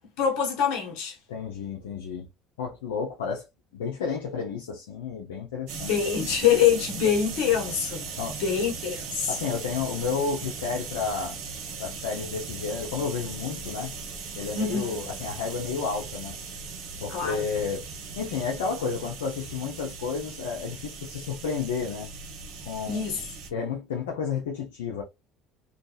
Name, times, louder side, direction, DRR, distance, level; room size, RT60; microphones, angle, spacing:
voice 1, 0.2-1.2 5.7-9.3 14.5-14.9 17.1-17.4 22.9-23.3, left 8 dB, 70° left, 1.1 m, -25 dB
voice 2, 1.3-2.3 2.6-3.5 3.7-5.9 8.2-8.4 9.3-11.4 11.8-13.9 14.4-16.4 17.0-17.8 18.2-22.1 22.6-23.0 23.5-25.0, left 5 dB, 90° left, 0.5 m, -31 dB
sound 1, 5.7-23.5, right 5 dB, 70° right, 0.8 m, -38 dB
2.6 x 2.3 x 2.3 m
supercardioid pair, 80°, 0 cm